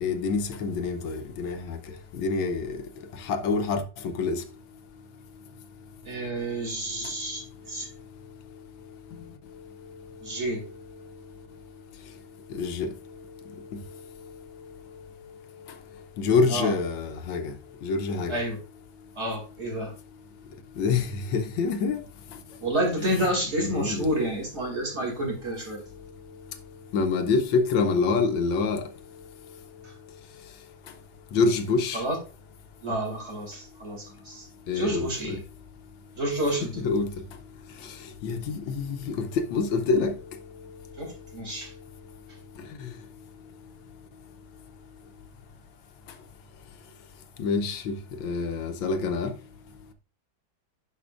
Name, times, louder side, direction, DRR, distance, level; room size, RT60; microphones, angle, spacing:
voice 1, 0.0-1.8 2.1-2.7 3.2-4.4 12.5-12.9 13.7-13.8 16.2-17.5 17.8-18.4 20.8-22.0 23.0-24.1 26.9-28.8 31.3-32.0 34.7-35.4 36.8-37.1 38.2-40.1 42.8-42.9 47.4-49.3, left 4 dB, 85° left, 1.6 m, -26 dB
voice 2, 6.0-7.9 10.2-10.6 16.5-16.7 18.3-18.6 19.1-19.9 22.6-25.8 29.8-29.9 31.9-32.2 32.8-34.5 34.7-35.4 36.2-36.9 41.0-41.7, right 1 dB, 35° right, 2.7 m, -29 dB
11.0 x 5.1 x 2.4 m
omnidirectional pair, 2.1 m